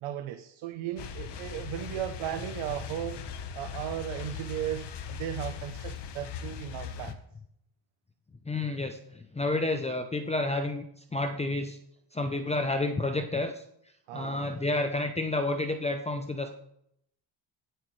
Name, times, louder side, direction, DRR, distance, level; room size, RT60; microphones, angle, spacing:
voice 1, 0.0-3.2 3.5-7.2 14.1-14.5, right 11 dB, 80° right, 7 dB, 1.0 m, -36 dB
sound 1, 1.0-7.1, left 7 dB, 55° left, 1.3 m, -39 dB
voice 2, 8.5-11.8 12.1-13.6 14.1-16.5, left 2 dB, 15° left, 7 dB, 0.7 m, -30 dB
16.5 x 7.8 x 3.3 m, 0.73 s
cardioid pair, 120°, 47 cm